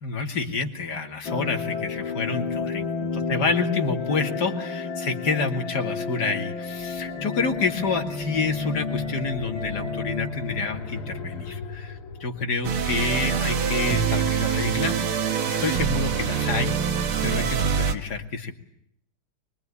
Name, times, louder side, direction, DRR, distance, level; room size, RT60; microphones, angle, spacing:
voice 1, 0.0-2.9 3.3-16.7 17.2-18.5, left 4 dB, 50° left, 4 dB, 3.0 m, -28 dB
sound 1, 1.2-11.5, left 4 dB, 70° left, 2.8 m, -31 dB
sound 2, 6.7-15.5, left 3 dB, 85° left, 4.0 m, -41 dB
sound 3, 12.6-17.9, right 7 dB, 75° right, 2.5 m, -25 dB
24.0 x 22.5 x 9.9 m, 0.71 s
omnidirectional pair, 2.4 m